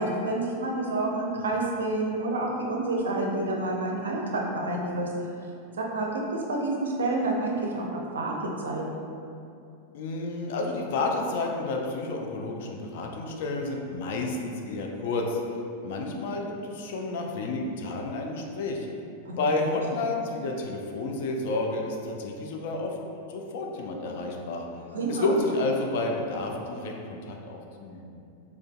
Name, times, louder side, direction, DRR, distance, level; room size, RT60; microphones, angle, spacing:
voice 1, 0.0-5.1 5.9-7.9 8.1-9.0 19.3-19.6 24.9-25.4, right 2 dB, 65° right, -1 dB, 0.4 m, -29 dB
voice 2, 9.9-15.4 15.8-18.9 19.4-23.0 23.3-24.7 25.1-28.1, left 2 dB, 55° left, 1 dB, 0.3 m, -30 dB
3.7 x 2.2 x 2.3 m, 2.6 s
figure-of-eight pair, 90°, 0 cm